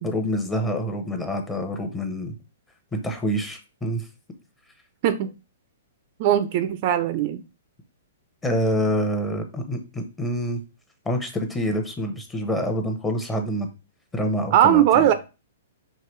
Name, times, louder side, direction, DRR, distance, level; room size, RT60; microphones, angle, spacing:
voice 1, 0.0-2.3 2.9-4.1 8.4-10.6 11.0-13.7 14.1-15.1, equal, 10° left, 0.8 m, -26 dB
voice 2, 6.2-7.4 14.5-15.1, right 11 dB, 45° right, 0.4 m, -19 dB
4.7 x 3.0 x 3.1 m
hypercardioid pair, 135°, 0 cm